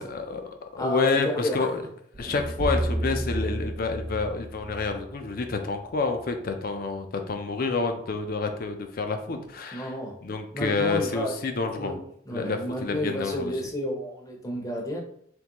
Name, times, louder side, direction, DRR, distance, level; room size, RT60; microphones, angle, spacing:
voice 1, 0.0-1.8 2.2-9.9 10.2-12.0 12.3-13.5, left 4 dB, 50° left, 6 dB, 0.5 m, -29 dB
voice 2, 0.8-1.6 9.3-9.4 9.7-10.1 10.5-11.3 11.8-12.0 12.3-15.0, equal, 20° left, 1 dB, 0.7 m, -31 dB
sound 1, 2.1-6.3, right 1 dB, 40° right, 0.5 m, -32 dB
3.6 x 3.2 x 2.9 m, 0.67 s
head